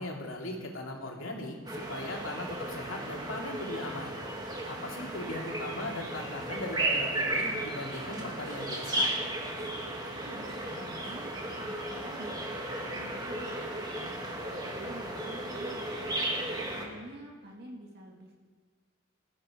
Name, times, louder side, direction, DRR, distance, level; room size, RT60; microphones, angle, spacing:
voice 1, 0.0-4.2 4.7-9.1, left 1 dB, 85° left, 0 dB, 2.7 m, -39 dB
sound 1, 1.7-16.9, right 1 dB, 20° right, 1.8 m, -35 dB
Tools, 6.4-6.6 6.9-8.8 9.0-9.9 10.5-11.3, right 2 dB, 90° right, 3.5 m, -56 dB
voice 2, 10.2-11.3 11.6-12.3 12.6-13.6 14.0-15.9 16.6-18.3, right 1 dB, 50° right, -1 dB, 1.9 m, -48 dB
19.0 x 13.0 x 5.0 m, 1.5 s
head